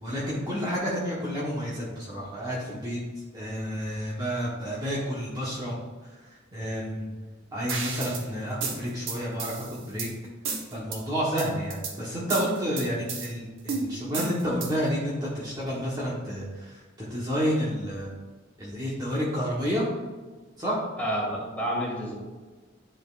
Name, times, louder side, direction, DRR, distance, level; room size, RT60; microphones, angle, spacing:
voice 1, 0.0-3.0 3.3-5.7 6.5-7.1 7.5-10.1 10.7-18.1 18.6-19.8 20.6-20.8, equal, 20° right, -7 dB, 1.2 m, -30 dB
sound 1, 7.7-8.2 8.6-10.1 10.4-11.0 11.4-11.9 12.3-13.3 13.7-14.9, right 4 dB, 90° right, 1.1 m, -32 dB
voice 2, 21.0-22.1, equal, 10° left, -4 dB, 2.0 m, -29 dB
10.5 x 5.1 x 2.5 m, 1.4 s
head